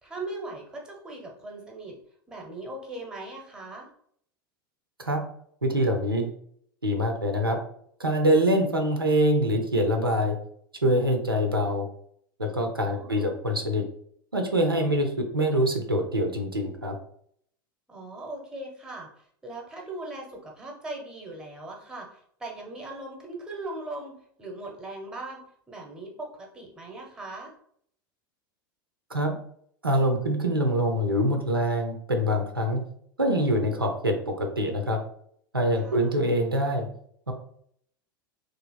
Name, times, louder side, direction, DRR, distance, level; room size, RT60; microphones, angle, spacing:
voice 1, 0.0-2.0 2.3-3.9 12.8-13.3 17.9-27.5 35.8-36.2, right 2 dB, 5° right, 0 dB, 0.8 m, -39 dB
voice 2, 5.6-6.3 6.8-7.6 8.0-10.4 10.8-11.9 12.4-13.9 14.3-17.0 29.1-29.4 29.8-32.8 33.2-35.0 35.5-36.9 37.3-37.4, equal, 90° right, 3 dB, 0.5 m, -24 dB
2.9 x 2.4 x 2.3 m, 0.65 s
figure-of-eight pair, 85°, 12 cm